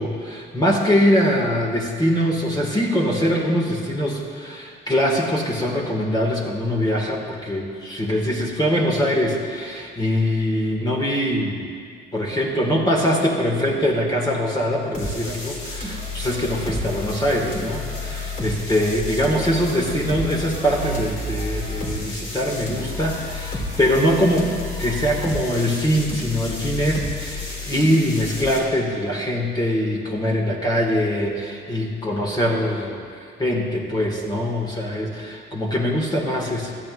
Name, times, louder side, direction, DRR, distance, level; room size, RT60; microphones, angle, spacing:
voice 1, 0.0-11.7 12.1-24.5 24.8-36.8, equal, 20° left, -1 dB, 2.0 m, -23 dB
sound 1, 14.9-28.6, left 1 dB, 40° left, 3.6 m, -31 dB
17.0 x 13.0 x 2.5 m, 2.2 s
supercardioid pair, 80°, 21 cm